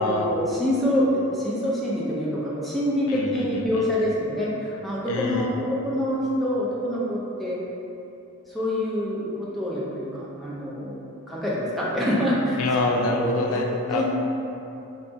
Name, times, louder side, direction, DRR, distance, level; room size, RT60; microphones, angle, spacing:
voice 1, 0.0-7.6 8.5-11.0 11.3-12.6 13.1-13.4 13.9-14.1, equal, ahead, -8 dB, 0.5 m, -26 dB
voice 2, 3.1-3.8 5.1-5.5 12.6-14.1, left 2 dB, 75° left, 1 dB, 0.3 m, -26 dB
4.0 x 2.3 x 2.6 m, 2.8 s
head